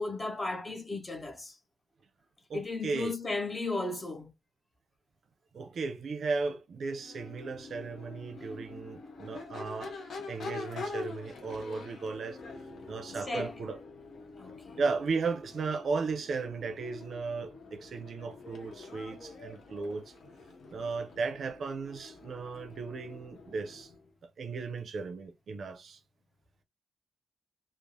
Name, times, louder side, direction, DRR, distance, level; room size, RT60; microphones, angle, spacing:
voice 1, 0.0-1.6 2.5-4.3 8.4-8.6 13.3-13.5 14.4-14.7, left 3 dB, 20° left, 0.5 m, -35 dB
voice 2, 2.5-3.1 5.5-9.9 10.3-12.4 12.9-13.8 14.8-20.1 20.7-23.9 24.4-26.0, right 4 dB, 55° right, 0.5 m, -35 dB
Crowd / Race car auto racing / Accelerating revving vroom, 6.9-24.0, left 3 dB, 70° left, 0.9 m, -46 dB
3.1 x 2.0 x 2.5 m
wide cardioid pair, 170°, 0 cm